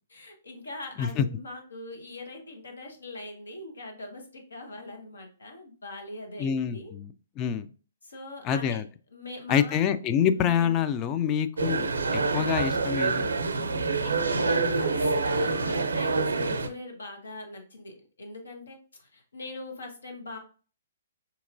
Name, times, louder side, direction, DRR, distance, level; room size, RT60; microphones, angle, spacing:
voice 1, 0.1-6.9 8.0-8.8 9.1-9.8 10.3-10.8 14.0-20.4, left 2 dB, 85° left, 3 dB, 1.2 m, -42 dB
voice 2, 6.4-7.7 8.4-8.8 9.5-13.3, left 8 dB, 25° left, 11 dB, 0.3 m, -26 dB
sound 1, 11.6-16.7, right 3 dB, 85° right, 0.5 m, -26 dB
4.4 x 2.9 x 2.6 m, 0.38 s
hypercardioid pair, 135°, 0 cm